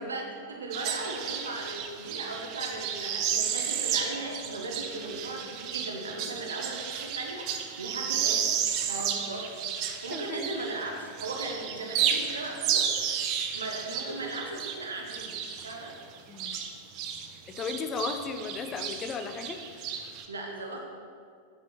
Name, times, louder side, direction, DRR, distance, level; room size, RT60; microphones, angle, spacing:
voice 1, 0.0-8.6 8.9-9.6 10.0-13.2 13.5-15.4 15.6-16.0 20.3-20.8, right 2 dB, 75° right, 1 dB, 1.0 m, -37 dB
sound 1, 0.7-10.9 11.2-17.3 17.5-20.3, right 8 dB, 40° right, 0.7 m, -32 dB
voice 2, 9.9-10.5 16.3-16.6 17.6-19.6, left 5 dB, 25° left, 7 dB, 0.7 m, -35 dB
9.0 x 5.5 x 5.9 m, 2.2 s
figure-of-eight pair, 90°, 0 cm